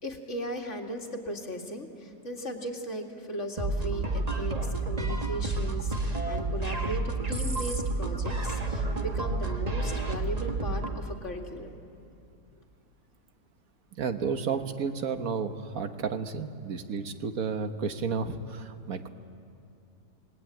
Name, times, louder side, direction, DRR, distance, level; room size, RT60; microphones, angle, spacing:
voice 1, 0.0-11.8, equal, 45° left, 2 dB, 2.6 m, -37 dB
sound 1, 3.6-11.0, right 3 dB, 25° right, 1.6 m, -30 dB
voice 2, 14.0-19.1, right 5 dB, 60° right, 8 dB, 1.7 m, -32 dB
28.0 x 20.0 x 9.2 m, 2.5 s
omnidirectional pair, 1.7 m